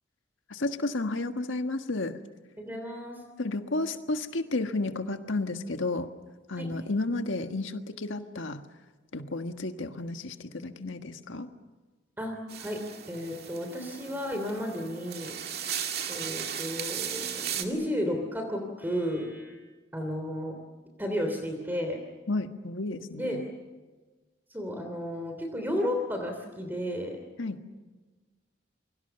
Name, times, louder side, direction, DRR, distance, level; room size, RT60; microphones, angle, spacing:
voice 1, 0.5-2.2 3.4-6.1 6.5-8.6 9.1-11.5 22.3-23.4 27.4-27.6, left 2 dB, 90° left, 7 dB, 1.6 m, -32 dB
voice 2, 2.6-3.2 6.6-6.7 12.2-12.8 13.1-15.3 16.1-19.6 19.9-20.6 21.0-22.0 23.1-23.4 24.5-27.2, equal, 10° right, 4 dB, 3.0 m, -33 dB
sound 1, 12.5-17.6, right 8 dB, 55° right, 2.4 m, -36 dB
29.0 x 23.5 x 7.0 m, 1.3 s
head